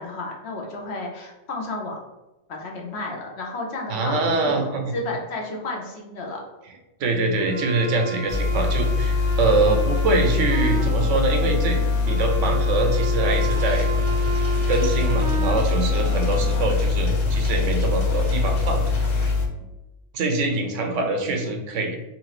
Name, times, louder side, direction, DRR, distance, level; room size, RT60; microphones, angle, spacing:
voice 1, 0.0-2.0 2.5-6.4, left 2 dB, 60° left, 0 dB, 1.0 m, -32 dB
voice 2, 3.9-4.9 7.0-11.8 12.1-13.9 14.7-18.9 20.1-22.0, right 3 dB, 80° right, 3 dB, 1.0 m, -24 dB
sound 1, 7.4-16.6, right 1 dB, 50° right, 0.8 m, -33 dB
sound 2, 8.3-19.5, left 4 dB, 85° left, 1.0 m, -23 dB
sound 3, 13.3-19.3, left 1 dB, 30° left, 0.5 m, -34 dB
3.8 x 2.8 x 3.0 m, 0.99 s
omnidirectional pair, 1.3 m